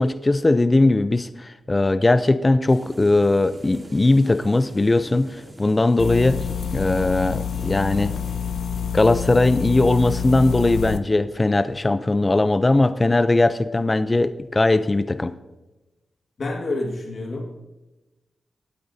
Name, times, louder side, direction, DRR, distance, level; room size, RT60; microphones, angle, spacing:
voice 1, 0.0-6.4 6.7-8.1 8.9-15.3, left 2 dB, 25° left, 12 dB, 0.5 m, -19 dB
sound 1, 2.7-8.3, right 1 dB, 25° right, 2.8 m, -44 dB
sound 2, 6.0-11.0, left 7 dB, 85° left, 0.6 m, -27 dB
voice 2, 16.4-17.6, left 2 dB, 55° left, 0 dB, 1.8 m, -28 dB
22.0 x 8.6 x 2.7 m, 1.1 s
cardioid pair, 75°, 0 cm